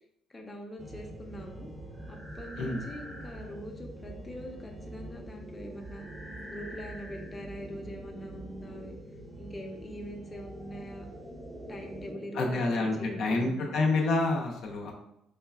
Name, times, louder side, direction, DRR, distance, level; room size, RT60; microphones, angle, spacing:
voice 1, 0.3-1.7 2.1-6.0 6.5-8.9 9.4-11.1 11.7-13.7, equal, 20° left, 1 dB, 0.7 m, -43 dB
sound 1, 0.8-13.3, right 1 dB, 30° right, 0.7 m, -44 dB
voice 2, 12.3-14.9, left 3 dB, 70° left, -1 dB, 0.6 m, -28 dB
4.7 x 2.3 x 2.3 m, 0.82 s
supercardioid pair, 75°, 0 cm